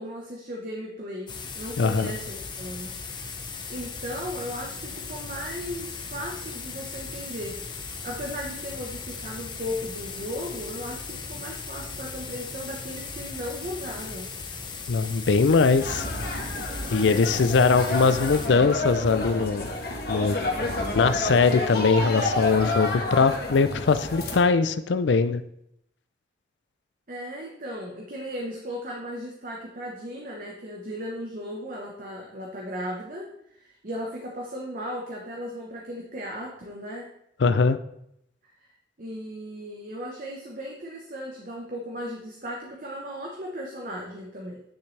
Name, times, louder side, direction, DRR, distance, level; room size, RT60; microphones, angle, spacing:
voice 1, 0.0-2.9 3.7-7.6 8.0-14.3 27.1-37.1 38.4-38.7 39.0-44.6, equal, 45° right, -1 dB, 1.1 m, -36 dB
sound 1, 1.3-18.5, left 4 dB, 25° left, 0.9 m, -37 dB
voice 2, 1.8-2.1 14.9-16.1 16.9-19.7 20.1-20.4 20.9-25.4 37.4-37.8, left 4 dB, 70° left, 13 dB, 0.4 m, -21 dB
sound 2, 15.8-24.4, left 2 dB, 55° left, 1.4 m, -30 dB
9.7 x 6.8 x 3.3 m, 0.76 s
head